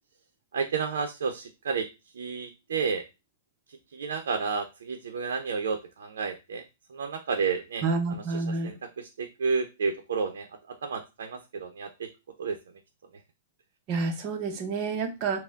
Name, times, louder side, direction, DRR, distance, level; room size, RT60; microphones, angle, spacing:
voice 1, 0.5-1.9 2.1-3.0 3.9-6.6 6.9-7.8 8.1-12.1 12.4-12.6, right 5 dB, 90° right, 5 dB, 0.6 m, -31 dB
voice 2, 7.8-8.7 13.9-15.4, right 4 dB, 30° right, 4 dB, 0.7 m, -29 dB
4.4 x 2.1 x 3.5 m, 0.26 s
hypercardioid pair, 160°, 0 cm